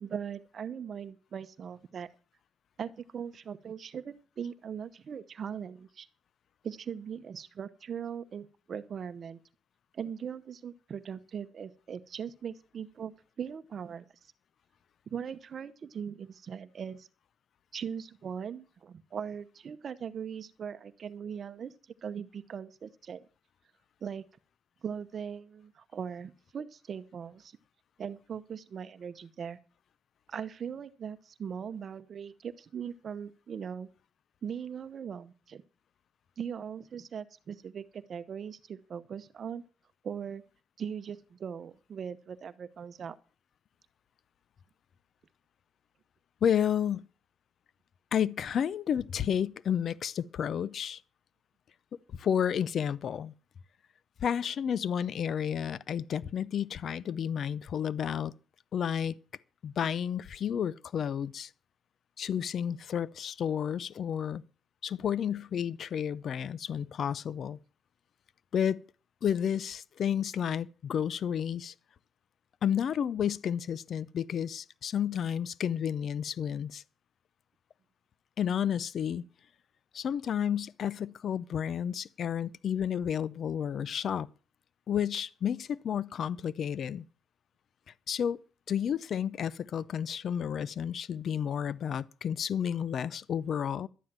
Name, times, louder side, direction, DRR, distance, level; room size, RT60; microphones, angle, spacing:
voice 1, 0.0-2.1 2.8-6.1 6.6-9.4 9.9-14.0 15.1-17.1 17.7-21.7 22.0-23.2 24.0-24.2 24.8-27.6 28.0-29.6 30.3-33.9 34.4-35.6 36.4-39.6 40.0-40.4 40.8-43.2, right 7 dB, 50° right, 0.8 m, -40 dB
voice 2, 46.4-47.1 48.1-51.0 52.1-53.3 54.2-58.3 58.7-59.2 59.6-61.5 62.2-64.4 64.8-67.6 68.5-68.8 69.2-71.7 72.6-76.8 78.4-79.2 79.9-84.3 84.9-87.0 88.1-88.4 88.7-93.9, left 8 dB, 60° left, 0.6 m, -31 dB
12.0 x 9.3 x 7.4 m
cardioid pair, 90°, 0 cm